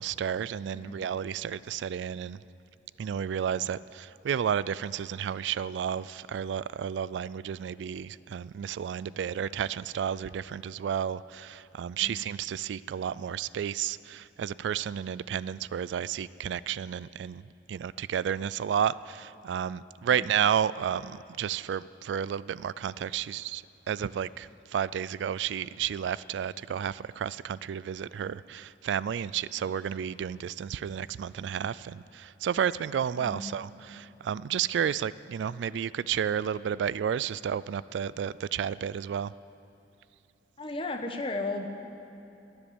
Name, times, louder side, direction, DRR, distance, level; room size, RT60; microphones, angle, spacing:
voice 1, 0.0-2.4 3.0-17.4 17.7-39.3, right 8 dB, 85° right, 19 dB, 0.3 m, -32 dB
voice 2, 40.6-41.7, left 2 dB, 30° left, 5 dB, 1.1 m, -35 dB
12.0 x 10.5 x 9.8 m, 2.9 s
head